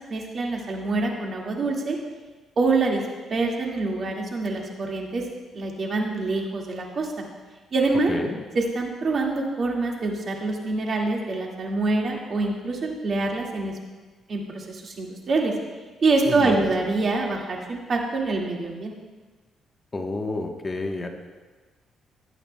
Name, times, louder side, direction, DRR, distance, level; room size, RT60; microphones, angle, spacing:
voice 1, 0.1-2.0 2.6-3.0 3.3-5.2 5.5-7.2 7.7-8.1 8.6-13.7 14.3-15.5 16.0-18.9, right 3 dB, 50° right, 0 dB, 2.0 m, -25 dB
voice 2, 16.2-16.6 19.9-21.1, left 2 dB, 25° left, 3 dB, 1.1 m, -30 dB
19.0 x 8.7 x 2.3 m, 1.3 s
cardioid pair, 90°, 0 cm